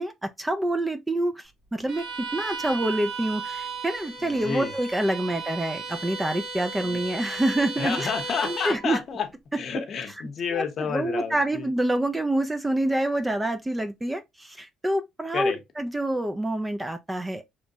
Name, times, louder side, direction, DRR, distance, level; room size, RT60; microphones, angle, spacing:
voice 1, 0.0-2.1 2.3-8.1 8.4-9.0 10.5-17.4, right 1 dB, 15° right, 0.3 m, -27 dB
Bowed string instrument, 1.9-8.9, right 4 dB, 75° right, 1.5 m, -35 dB
voice 2, 4.2-4.7 6.8-7.0 7.8-9.3 9.6-11.7 15.3-15.6, left 6 dB, 55° left, 0.8 m, -30 dB
3.0 x 2.2 x 2.6 m
cardioid pair, 90°, 0 cm